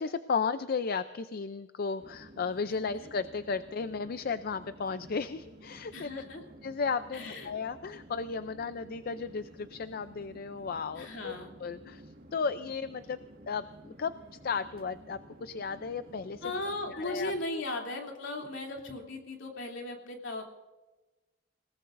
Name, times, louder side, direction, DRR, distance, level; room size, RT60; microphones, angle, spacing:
voice 1, 0.0-6.1 6.6-11.3 11.6-12.0 12.3-13.2 13.5-14.1 14.4-16.4 16.9-17.6, left 5 dB, 50° left, 11 dB, 0.5 m, -34 dB
Chatter / Fixed-wing aircraft airplane, 2.0-17.4, right 1 dB, 50° right, 1.9 m, -53 dB
voice 2, 5.9-6.4 7.1-7.5 11.0-11.5 16.4-20.4, left 2 dB, 70° left, 1 dB, 3.0 m, -37 dB
28.0 x 18.5 x 2.6 m, 1.2 s
head